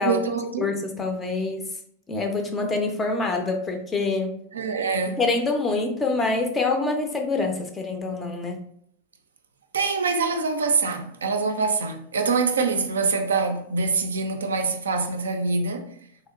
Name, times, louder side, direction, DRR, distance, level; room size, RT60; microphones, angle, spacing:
voice 1, 0.0-0.7 4.5-5.2 9.7-15.9, right 4 dB, 70° right, 0.3 m, -25 dB
voice 2, 0.6-1.7 2.1-4.4 5.2-8.6, left 3 dB, 20° left, 0.4 m, -25 dB
3.3 x 2.7 x 2.3 m
figure-of-eight pair, 90°, 0 cm